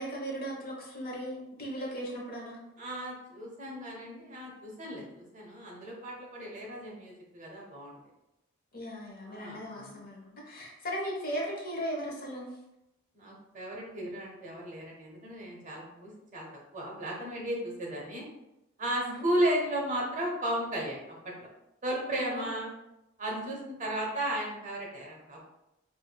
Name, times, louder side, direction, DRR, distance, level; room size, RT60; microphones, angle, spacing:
voice 1, 0.0-2.6 8.7-12.5 19.0-19.2 22.1-22.5 23.3-23.5, equal, 45° left, -1 dB, 0.9 m, -37 dB
voice 2, 2.8-8.0 9.3-10.0 13.1-16.5 16.7-18.3 18.8-21.5 21.8-22.7 23.2-25.4, right 1 dB, 40° right, -1 dB, 0.9 m, -35 dB
4.8 x 2.6 x 2.2 m, 0.90 s
head